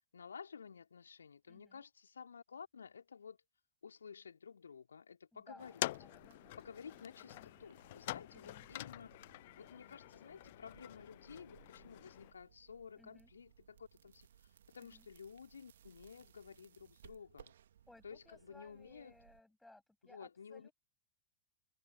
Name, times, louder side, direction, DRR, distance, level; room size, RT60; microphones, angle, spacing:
voice 1, 0.1-3.4 3.8-5.9 6.6-9.1 9.6-17.5 18.0-19.1 20.0-20.7, left 6 dB, 70° left, 2.8 m, -53 dB
voice 2, 1.4-1.8 5.3-7.0 7.3-7.5 8.3-8.7 13.0-13.3 14.8-15.1 17.9-20.7, left 2 dB, 5° left, 6.7 m, -62 dB
sound 1, 5.6-12.3, left 17 dB, 55° left, 0.6 m, -46 dB
sound 2, 5.9-19.4, right 10 dB, 65° right, 2.2 m, -65 dB
figure-of-eight pair, 90°, 0 cm